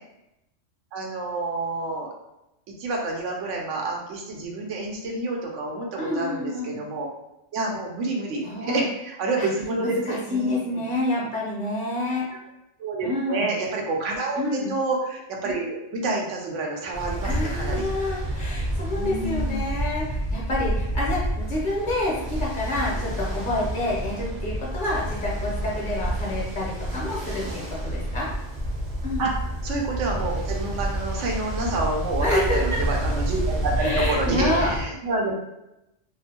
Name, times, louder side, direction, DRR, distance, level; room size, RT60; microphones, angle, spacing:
voice 1, 0.9-2.1 2.8-7.1 7.5-10.8 12.8-14.4 14.7-17.9 18.9-19.7 29.2-29.3 29.6-35.3, right 2 dB, 80° right, 0 dB, 1.0 m, -28 dB
voice 2, 6.0-6.8 8.4-8.8 9.4-9.5 9.8-12.3 13.0-13.5 14.3-14.7 17.2-27.4 27.7-28.3 29.0-29.3 32.2-32.6 33.8-34.7, left 1 dB, 45° left, -4 dB, 0.8 m, -28 dB
Ocean, 16.9-34.8, right 1 dB, 45° right, 0.6 m, -29 dB
2.5 x 2.5 x 2.7 m, 0.90 s
omnidirectional pair, 1.2 m